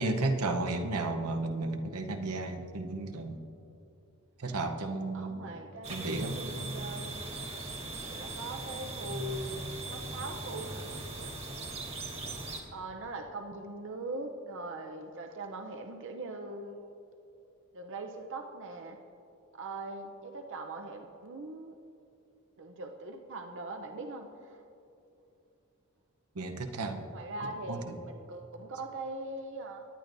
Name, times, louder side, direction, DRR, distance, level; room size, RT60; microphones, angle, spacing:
voice 1, 0.0-3.4 4.4-5.5 5.9-6.4 26.3-27.1 27.7-28.0, right 2 dB, 85° right, 6 dB, 0.9 m, -33 dB
voice 2, 5.1-7.2 8.1-10.9 12.7-16.9 17.7-19.0 19.5-21.8 22.6-24.6 27.1-29.9, right 2 dB, 55° right, 4 dB, 0.6 m, -41 dB
sound 1, 5.8-12.6, right 2 dB, 30° right, 1.3 m, -39 dB
18.5 x 10.5 x 2.6 m, 2.7 s
head